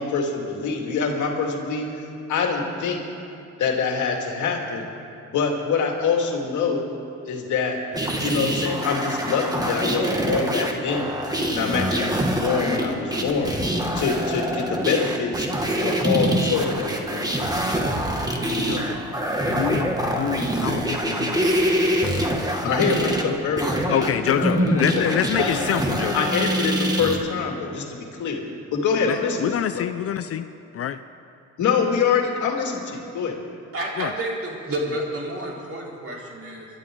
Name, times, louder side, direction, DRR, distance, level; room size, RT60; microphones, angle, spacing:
voice 1, 0.0-3.0 3.6-4.9 5.3-6.9 7.3-7.8 8.2-11.1 11.5-13.5 13.9-15.5 15.8-17.5 22.6-25.7 26.1-28.4 28.7-29.9 31.6-33.4, left 5 dB, 75° left, 1 dB, 2.3 m, -25 dB
sound 1, 7.9-27.2, right 1 dB, 10° right, 1.9 m, -25 dB
voice 2, 18.6-19.0 19.4-21.7 22.0-22.3 23.9-26.3 29.0-30.5 30.7-31.0 34.0-34.1, left 9 dB, 50° left, 11 dB, 0.5 m, -26 dB
voice 3, 33.7-36.7, right 1 dB, 50° right, -3 dB, 4.2 m, -30 dB
25.0 x 12.0 x 3.8 m, 2.9 s
cardioid pair, 90°, 30 cm